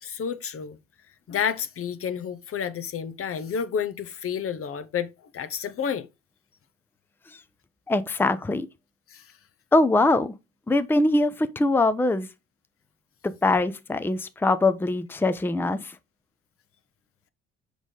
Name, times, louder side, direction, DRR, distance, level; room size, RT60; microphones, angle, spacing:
voice 1, 0.0-0.8 1.3-6.1 9.1-9.3, left 7 dB, 45° left, 0.8 m, -30 dB
voice 2, 7.9-8.7 9.7-10.4 10.7-12.3 13.2-16.0, left 2 dB, 5° left, 0.6 m, -23 dB
6.3 x 5.0 x 3.8 m
hypercardioid pair, 55°, 31 cm